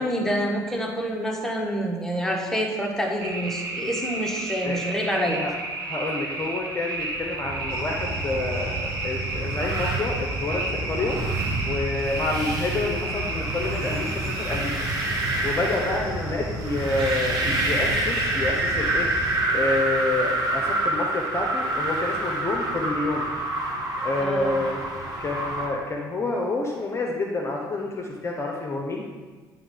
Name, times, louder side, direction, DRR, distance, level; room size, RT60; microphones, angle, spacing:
voice 1, 0.0-5.4 24.2-24.6, equal, 5° left, 1 dB, 1.1 m, -27 dB
sound 1, 3.2-14.6, right 2 dB, 80° right, 0.8 m, -32 dB
voice 2, 5.3-11.2 11.6-14.9 15.4-19.1 19.5-23.3 24.0-24.8 25.2-29.0, left 2 dB, 25° left, -1 dB, 0.8 m, -28 dB
sound 2, 7.2-25.7, right 2 dB, 35° right, 1.8 m, -28 dB
sound 3, 7.7-19.4, right 1 dB, 55° right, 1.7 m, -34 dB
9.3 x 3.6 x 3.8 m, 1.3 s
figure-of-eight pair, 50°, 11 cm